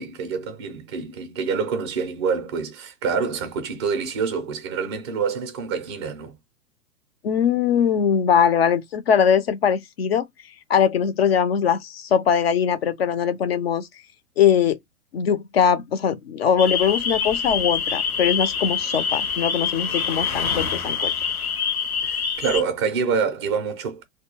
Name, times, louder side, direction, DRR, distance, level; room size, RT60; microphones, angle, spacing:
voice 1, 0.0-6.4 22.0-24.0, right 5 dB, 20° right, 0.4 m, -26 dB
voice 2, 7.2-10.3 10.7-13.9 14.4-14.8 15.1-21.1, left 8 dB, 45° left, 0.4 m, -21 dB
sound 1, 16.6-22.6, left 6 dB, 75° left, 0.8 m, -25 dB
2.2 x 2.2 x 2.9 m
figure-of-eight pair, 105°, 44 cm